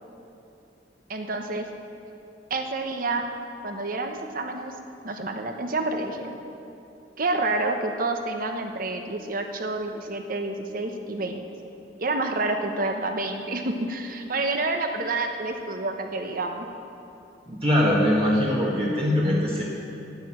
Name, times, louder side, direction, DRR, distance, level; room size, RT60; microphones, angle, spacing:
voice 1, 1.1-1.7 2.5-3.3 3.6-4.7 5.0-6.3 7.2-11.4 12.0-16.7, right 2 dB, 50° right, 5 dB, 1.0 m, -28 dB
voice 2, 17.5-19.6, left 1 dB, 35° right, -5 dB, 1.4 m, -22 dB
10.5 x 9.4 x 7.7 m, 2.8 s
head